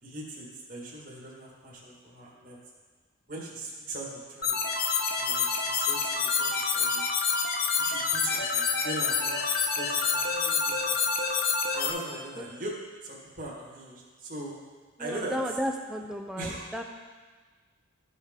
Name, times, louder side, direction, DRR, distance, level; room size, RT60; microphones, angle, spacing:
voice 1, 0.0-2.6 3.3-4.6 5.2-7.1 7.7-9.4 9.7-11.0 11.7-14.5 15.0-15.6 16.4-16.8, right 2 dB, 40° right, -5 dB, 1.8 m, -40 dB
sound 1, 4.4-11.9, left 5 dB, 45° left, 0.8 m, -27 dB
voice 2, 15.0-16.8, equal, 5° right, 3 dB, 0.5 m, -33 dB
13.5 x 5.5 x 3.6 m, 1.4 s
head